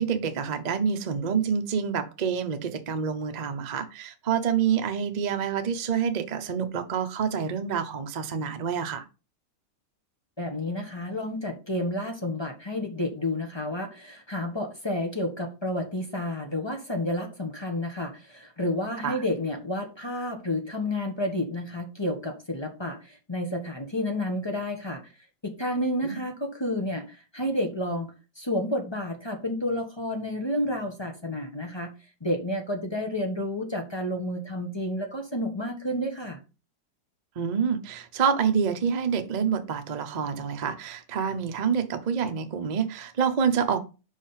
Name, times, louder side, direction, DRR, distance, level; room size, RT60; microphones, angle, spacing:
voice 1, 0.0-9.1 19.0-19.2 26.0-26.2 37.4-43.8, right 7 dB, 90° right, 0.3 m, -27 dB
voice 2, 10.4-25.0 25.4-27.0 27.3-31.9 32.2-36.4, left 1 dB, 20° left, 1.0 m, -30 dB
5.5 x 5.0 x 5.6 m
omnidirectional pair, 2.1 m